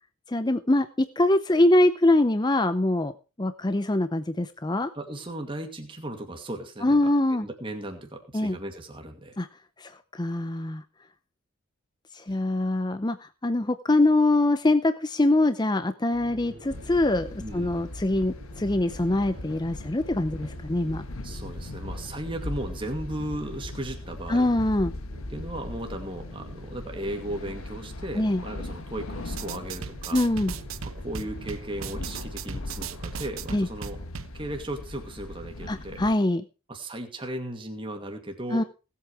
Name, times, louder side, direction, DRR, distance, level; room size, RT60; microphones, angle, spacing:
voice 1, 0.3-3.1 3.4-4.9 6.8-7.5 8.3-8.6 9.4-9.5 9.8-10.8 12.1-17.3 17.5-21.0 24.3-24.9 28.1-28.4 30.1-30.5 33.5-33.7 35.7-36.4 38.5-38.6, left 1 dB, 20° left, 11 dB, 0.6 m, -23 dB
voice 2, 5.0-9.4 12.3-12.4 17.4-17.9 21.2-24.5 25.3-30.2 31.0-34.0 34.3-36.0 36.7-38.6, right 1 dB, 25° right, 4 dB, 2.3 m, -36 dB
sound 1, 16.1-32.7, equal, 50° right, 3.0 m, -49 dB
sound 2, 16.7-36.1, left 2 dB, 85° left, 1.3 m, -39 dB
sound 3, 29.3-34.3, right 6 dB, 75° right, 0.8 m, -38 dB
18.0 x 8.6 x 4.8 m, 0.33 s
head